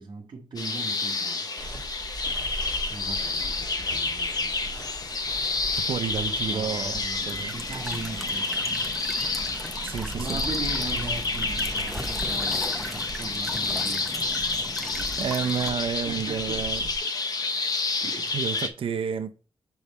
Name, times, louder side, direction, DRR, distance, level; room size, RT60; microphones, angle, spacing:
voice 1, 0.0-1.5 2.9-5.5 6.5-8.9 9.7-15.3 16.1-16.7 18.0-18.4, right 3 dB, 45° right, 0.9 m, -39 dB
sound 1, 0.6-18.7, left 3 dB, 40° left, 0.8 m, -29 dB
sound 2, 1.6-17.0, right 1 dB, 20° left, 1.6 m, -40 dB
voice 2, 5.7-7.6 9.8-10.4 12.5-12.6 15.2-16.8 18.3-19.4, right 7 dB, 65° right, 0.5 m, -30 dB
Walk footsteps / Chirp tweet / Stream, 7.2-15.7, equal, ahead, 0.7 m, -39 dB
7.0 x 3.5 x 4.1 m
wide cardioid pair, 125°, 10 cm